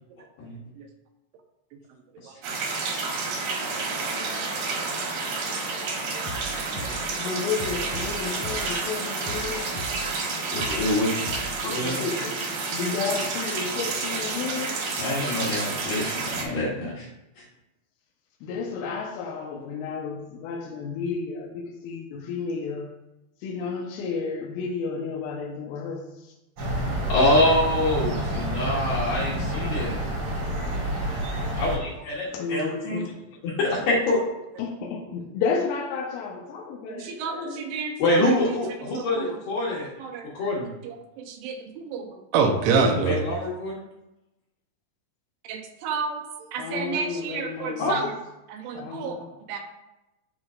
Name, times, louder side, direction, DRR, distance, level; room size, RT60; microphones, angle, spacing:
sound 1, 2.4-16.4, right 4 dB, 65° right, 3.0 m, -30 dB
voice 1, 3.4-4.3 4.5-4.7 5.5-6.2 6.6-6.9 29.5-29.7 30.8-31.1 31.4-31.5 36.9-38.6 38.9-39.4 40.0-40.3 40.8-43.2 45.5-46.2 46.5-48.2 48.5-49.6, right 5 dB, 80° right, 3.1 m, -30 dB
sound 2, 6.2-8.9 9.2-11.6, equal, 50° left, 2.3 m, -38 dB
voice 2, 7.2-9.9 11.8-14.8 18.4-22.9 23.4-26.3 32.3-33.2 34.6-37.7 46.6-48.0 48.7-49.2, left 5 dB, 85° left, 3.5 m, -32 dB
voice 3, 10.5-11.1 11.7-12.0 15.0-17.1 27.1-30.0 31.6-33.0 33.4-34.2 38.0-39.9 40.3-40.7 43.0-43.8 47.8-48.1, left 1 dB, 65° left, 2.9 m, -25 dB
Room Tone Open Window Quiet, 26.6-31.8, right 1 dB, 45° right, 2.2 m, -28 dB
13.5 x 4.9 x 2.4 m
omnidirectional pair, 5.6 m